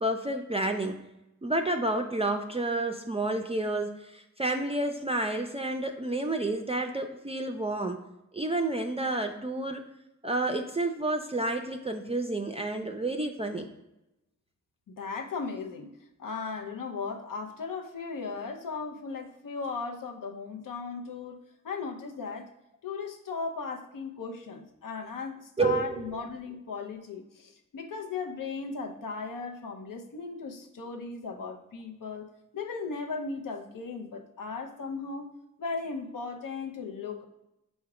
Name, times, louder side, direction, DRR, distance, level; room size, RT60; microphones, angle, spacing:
voice 1, 0.0-1.0 1.4-8.0 8.3-9.8 10.2-13.7 25.6-26.0, right 2 dB, 20° right, 3 dB, 0.4 m, -30 dB
voice 2, 14.9-15.9 16.2-21.4 21.6-22.5 22.8-35.3 35.6-37.2, left 4 dB, 90° left, 3 dB, 0.5 m, -37 dB
4.6 x 2.1 x 4.7 m, 0.91 s
cardioid pair, 40°, 32 cm